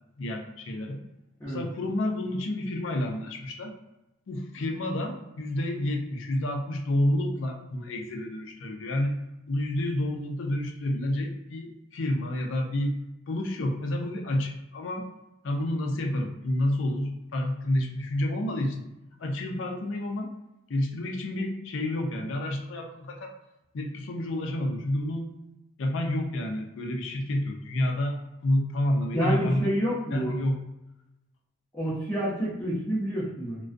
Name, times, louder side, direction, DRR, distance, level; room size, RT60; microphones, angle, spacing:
voice 1, 0.2-1.0 1.5-3.7 4.3-9.2 9.5-13.0 13.3-15.1 15.4-18.9 19.2-20.3 20.7-23.3 23.7-25.3 25.8-29.7 30.1-30.6, left 1 dB, 65° left, 2 dB, 0.4 m, -29 dB
voice 2, 29.1-30.4 31.7-33.6, equal, 10° left, -9 dB, 0.7 m, -28 dB
2.3 x 2.2 x 2.5 m, 0.92 s
head